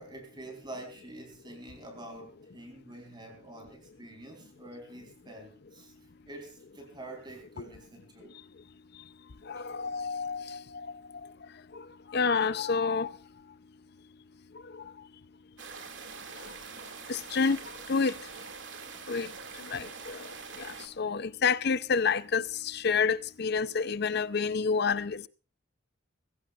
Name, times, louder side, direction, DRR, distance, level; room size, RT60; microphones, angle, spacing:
voice 1, 0.0-8.3 9.5-9.7, right 1 dB, 20° right, 4.2 m, -47 dB
voice 2, 9.5-10.6 12.1-13.1 17.1-17.6 17.9-18.1 19.1-19.3 19.7-20.2 20.6-20.7 21.0-25.3, left 5 dB, 55° left, 0.6 m, -28 dB
sound 1, 15.6-20.9, right 5 dB, 65° right, 2.4 m, -44 dB
21.5 x 16.0 x 2.5 m
head